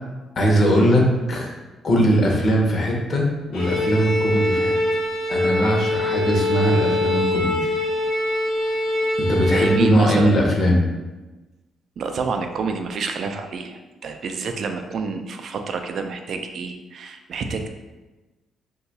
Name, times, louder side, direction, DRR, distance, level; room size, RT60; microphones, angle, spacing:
voice 1, 0.4-1.5 1.8-5.0 5.3-7.7 9.2-10.9, equal, 50° left, 0 dB, 0.7 m, -20 dB
Bowed string instrument, 3.5-9.9, left 1 dB, 80° left, 1.0 m, -23 dB
voice 2, 9.5-10.4 12.0-17.7, right 4 dB, 60° right, 6 dB, 0.3 m, -28 dB
2.7 x 2.3 x 4.0 m, 1.2 s
cardioid pair, 90°, 0 cm